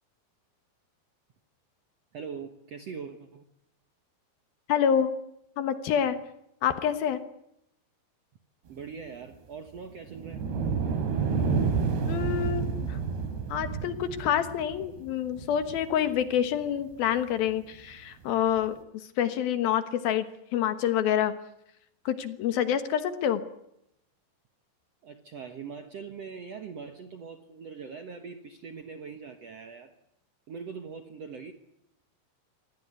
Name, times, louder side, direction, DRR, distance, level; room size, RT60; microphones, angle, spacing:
voice 1, 2.1-3.5 8.7-10.4 25.0-29.9 30.5-31.5, right 6 dB, 60° right, 6 dB, 1.7 m, -42 dB
voice 2, 4.7-5.1 5.6-6.2 6.6-7.2 12.1-13.0 13.5-21.3 22.1-23.4, left 9 dB, 70° left, 10 dB, 2.9 m, -27 dB
sound 1, 10.0-16.4 17.0-17.1 18.6-18.7, right 5 dB, 80° right, 4.7 m, -30 dB
25.5 x 18.5 x 9.5 m, 0.79 s
omnidirectional pair, 4.8 m